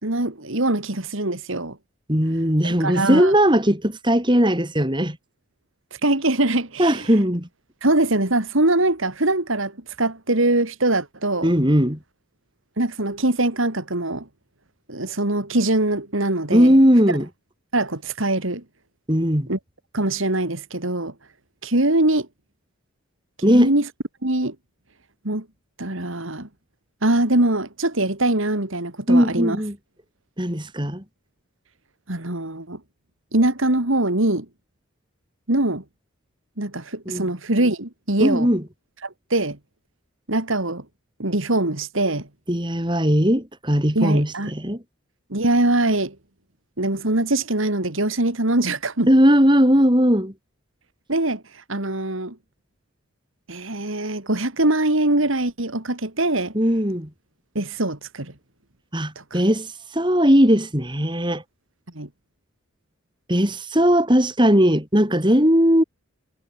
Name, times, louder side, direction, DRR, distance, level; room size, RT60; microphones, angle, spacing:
voice 1, 0.0-1.8 2.6-3.3 5.9-7.1 7.8-11.5 12.8-14.3 14.9-16.7 17.7-18.6 19.5-19.6 19.9-21.1 21.6-22.3 23.5-23.9 24.2-24.5 25.2-25.4 25.8-26.5 27.0-29.6 32.1-32.8 33.3-34.5 35.5-35.8 36.6-38.5 39.0-39.6 40.3-40.8 41.2-42.3 43.9-44.5 45.3-46.2 46.8-49.1 51.1-52.4 53.5-56.5 57.5-58.3 59.2-59.4 61.9-62.1, right 2 dB, 70° right, 3.0 m, -22 dB
voice 2, 2.1-5.2 6.8-7.5 11.4-12.0 16.5-17.3 19.1-19.5 23.4-23.7 29.1-29.8 30.4-31.0 37.1-37.2 38.2-38.6 42.5-44.8 49.1-50.3 56.5-57.1 58.9-61.4 63.3-65.8, equal, 20° right, 5.6 m, -18 dB
head